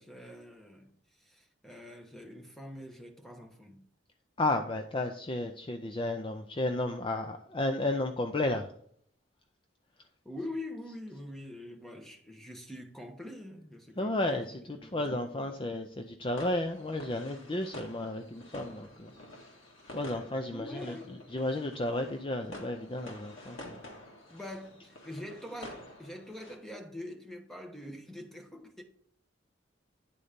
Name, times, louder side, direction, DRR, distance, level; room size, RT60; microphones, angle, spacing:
voice 1, 0.0-3.9 10.2-15.1 15.3-15.5 20.4-21.2 24.3-28.8, left 1 dB, ahead, 1.0 m, -44 dB
voice 2, 4.4-8.7 14.0-19.1 19.9-21.0 21.3-23.8, left 1 dB, 25° left, 0.4 m, -33 dB
sound 1, 16.3-26.6, left 1 dB, 85° left, 1.9 m, -49 dB
10.0 x 4.1 x 5.1 m
head